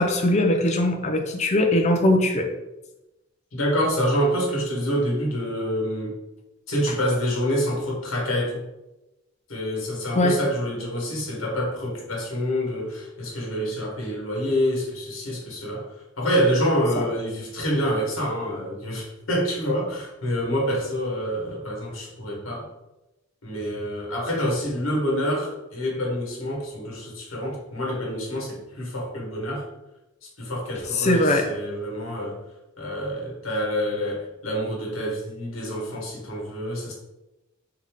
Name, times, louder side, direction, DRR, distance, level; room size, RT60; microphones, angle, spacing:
voice 1, 0.0-2.5 10.1-10.3 30.9-31.4, left 1 dB, 35° left, 4 dB, 0.5 m, -20 dB
voice 2, 3.5-6.2 6.7-8.6 9.5-15.9 16.2-22.6 23.4-29.6 30.4-32.4 32.8-36.9, equal, 85° left, -3 dB, 1.4 m, -27 dB
3.7 x 2.8 x 3.5 m, 0.98 s
head